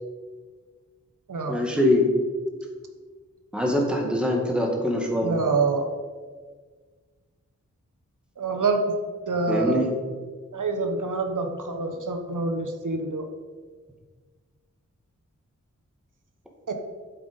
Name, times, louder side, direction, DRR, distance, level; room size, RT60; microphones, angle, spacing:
voice 1, 1.5-2.1 3.5-5.4 9.5-9.9, left 1 dB, 5° right, 0 dB, 1.9 m, -23 dB
voice 2, 5.2-5.9 8.4-8.9 9.3-9.8 10.5-13.3 16.7-16.8, right 3 dB, 90° right, 5 dB, 1.0 m, -26 dB
7.8 x 7.8 x 5.2 m, 1.5 s
wide cardioid pair, 85°, 30 cm